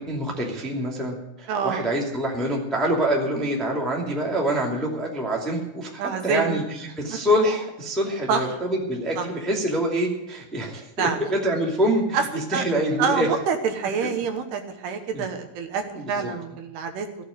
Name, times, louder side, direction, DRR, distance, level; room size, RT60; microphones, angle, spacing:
voice 1, 0.0-13.3 14.0-14.1 15.1-15.3 15.9-16.3, right 1 dB, ahead, -2 dB, 1.1 m, -26 dB
voice 2, 1.5-1.9 6.0-6.5 7.1-7.2 8.3-8.4 9.2-9.3 11.0-11.2 12.1-12.2 12.5-12.6 13.0-17.1, right 6 dB, 75° right, 6 dB, 3.0 m, -26 dB
16.0 x 6.7 x 9.5 m, 0.90 s
omnidirectional pair, 5.0 m